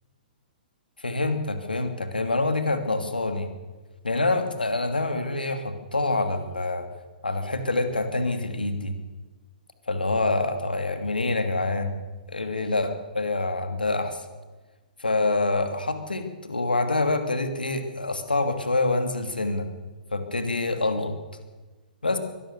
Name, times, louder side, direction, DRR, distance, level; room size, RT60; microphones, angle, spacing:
voice 1, 1.0-3.5 4.0-6.9 7.2-8.9 9.9-12.0 12.3-14.3 15.0-19.7 20.1-21.1 22.0-22.2, left 2 dB, 75° left, 7 dB, 2.8 m, -26 dB
23.5 x 18.5 x 6.7 m, 1.3 s
figure-of-eight pair, 115°, 5 cm